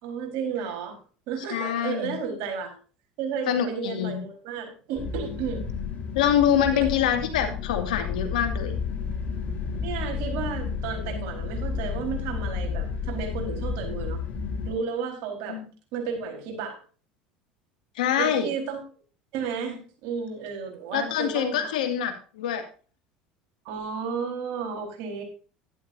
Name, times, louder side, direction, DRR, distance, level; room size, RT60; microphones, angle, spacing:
voice 1, 0.0-0.9 1.3-2.7 3.2-5.7 6.7-6.9 9.8-14.2 14.7-15.6 15.9-16.8 18.2-18.8 19.3-21.7 23.6-25.2, right 6 dB, 65° right, 3 dB, 4.4 m, -32 dB
voice 2, 1.5-2.1 3.5-4.2 6.1-8.7 15.5-15.7 18.0-18.5 20.9-22.6, left 9 dB, 80° left, 6 dB, 2.2 m, -25 dB
sound 1, 5.0-14.7, left 6 dB, 40° left, 3.9 m, -31 dB
12.0 x 11.0 x 2.7 m, 0.39 s
hypercardioid pair, 80°, 4 cm